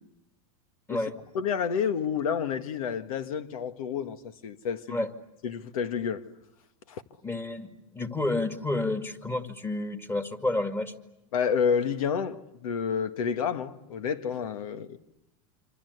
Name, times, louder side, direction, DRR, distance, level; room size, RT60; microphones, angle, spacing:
voice 1, 1.3-5.1 5.4-6.2 6.9-7.0 11.3-15.0, left 7 dB, 90° left, 1.8 m, -29 dB
voice 2, 7.2-10.9, left 2 dB, 15° left, 2.2 m, -30 dB
27.0 x 26.0 x 8.2 m
supercardioid pair, 135°, 18 cm